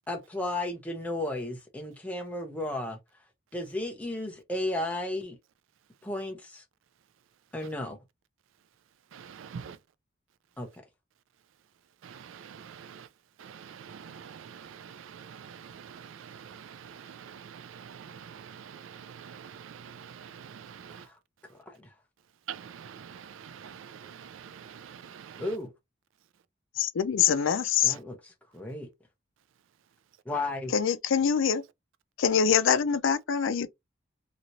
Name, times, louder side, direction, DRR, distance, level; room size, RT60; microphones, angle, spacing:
voice 1, 0.1-3.0 3.5-5.4 6.0-6.6 7.5-8.0 10.6-10.7 20.9-21.1 21.5-21.9 25.4-25.7 27.8-28.2 28.5-28.9 30.3-30.7, left 1 dB, 5° left, 0.6 m, -34 dB
voice 2, 9.1-9.8 12.0-13.1 13.4-21.1 22.5-25.5, right 7 dB, 75° right, 0.3 m, -45 dB
voice 3, 26.8-28.0 30.7-31.6 32.2-33.7, left 7 dB, 75° left, 0.4 m, -24 dB
3.0 x 2.8 x 2.5 m
head